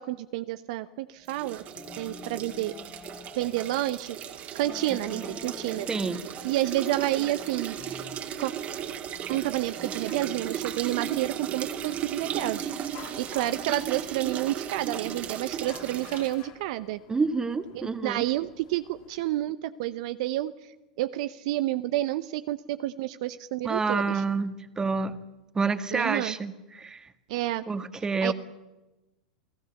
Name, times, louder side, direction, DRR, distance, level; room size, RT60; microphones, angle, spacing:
voice 1, 0.0-1.6 2.0-2.7 3.4-4.2 4.5-5.9 6.4-7.8 8.4-8.5 9.3-12.6 13.2-17.0 17.7-20.5 21.0-24.2 25.9-26.4 27.3-27.7 28.2-28.3, right 15 dB, 60° right, 12 dB, 0.8 m, -29 dB
sound 1, 1.3-16.4, right 9 dB, 35° right, 2.4 m, -36 dB
sound 2, 1.8-3.5 4.6-6.3 6.6-8.7 9.3-10.0, left 6 dB, 30° left, 2.0 m, -46 dB
voice 2, 5.9-6.2 17.1-18.2 23.6-25.2 25.5-27.1 27.7-28.3, right 4 dB, 15° right, 10 dB, 1.7 m, -28 dB
sound 3, 9.5-19.2, left 10 dB, 55° left, 3.1 m, -52 dB
28.5 x 17.5 x 7.1 m, 1.0 s
hypercardioid pair, 95°, 4 cm